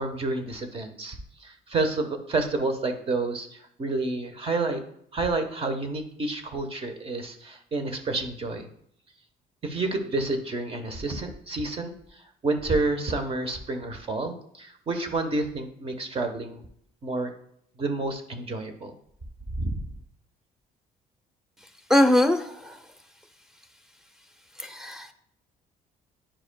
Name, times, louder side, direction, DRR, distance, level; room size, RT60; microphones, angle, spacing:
voice 1, 0.0-4.8 5.1-8.7 9.6-16.6 17.0-17.3 17.8-18.9 19.6-19.8, right 2 dB, 35° right, 7 dB, 1.1 m, -29 dB
voice 2, 21.9-22.8 24.6-25.1, left 1 dB, 5° right, 8 dB, 0.7 m, -22 dB
10.0 x 4.8 x 2.3 m, 0.67 s
cardioid pair, 110°, 17 cm